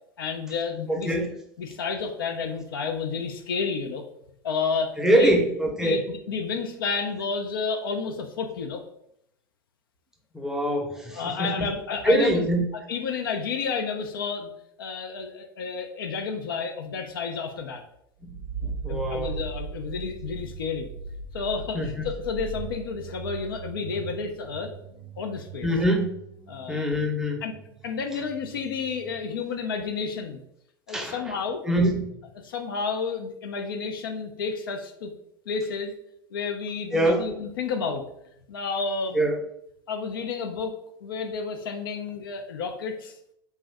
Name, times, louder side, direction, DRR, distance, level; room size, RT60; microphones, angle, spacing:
voice 1, 0.2-1.1 1.6-4.0 4.4-5.3 5.8-8.8 11.1-12.5 12.9-14.5 14.8-17.8 18.9-20.9 21.3-24.7 25.2-25.7 26.5-26.9 27.4-27.5 27.8-30.4 30.9-31.6 32.4-35.1 35.5-35.9 36.3-38.0 38.5-39.2 39.9-40.7 41.0-43.1, left 5 dB, 75° left, 4 dB, 0.4 m, -31 dB
voice 2, 0.9-1.3 5.0-6.0 10.3-11.7 12.0-12.6 18.3-18.4 18.6-19.3 21.7-21.9 25.6-26.1 26.7-27.4 30.9-31.1 31.7-32.0 36.9-37.2 39.1-39.3, right 1 dB, 5° right, 0 dB, 0.6 m, -23 dB
sound 1, 18.2-29.2, right 4 dB, 70° right, 0.4 m, -39 dB
2.6 x 2.2 x 3.3 m, 0.75 s
hypercardioid pair, 85°, 12 cm